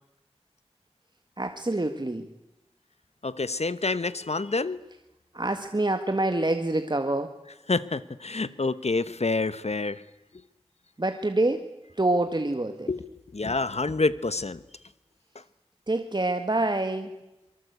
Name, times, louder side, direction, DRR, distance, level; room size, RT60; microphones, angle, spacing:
voice 1, 1.4-2.3 5.3-7.4 11.0-12.9 15.9-17.1, right 2 dB, 45° right, 6 dB, 1.8 m, -26 dB
voice 2, 3.2-4.8 7.7-10.0 12.9-13.0 13.3-14.6, left 3 dB, 80° left, 15 dB, 1.1 m, -27 dB
26.0 x 24.0 x 8.3 m, 0.93 s
wide cardioid pair, 50°, 11 cm